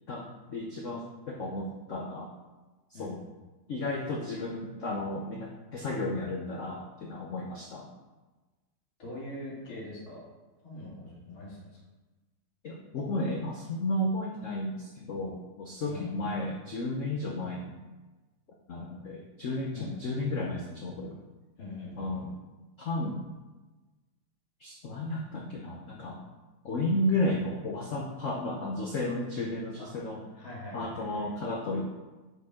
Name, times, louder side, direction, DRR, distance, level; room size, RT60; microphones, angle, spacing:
voice 1, 0.1-2.3 2.9-3.2 3.7-7.9 12.6-17.7 18.7-21.2 22.0-22.3 22.8-23.2 24.6-26.2 26.6-30.2 30.7-31.8, left 1 dB, 80° left, 0 dB, 0.6 m, -33 dB
voice 2, 9.0-10.2 10.6-11.6 15.9-16.2 19.7-20.0 21.6-22.2 29.8-29.9 30.4-31.3, left 1 dB, 65° left, -6 dB, 3.0 m, -42 dB
8.3 x 5.1 x 3.6 m, 1.2 s
omnidirectional pair, 2.4 m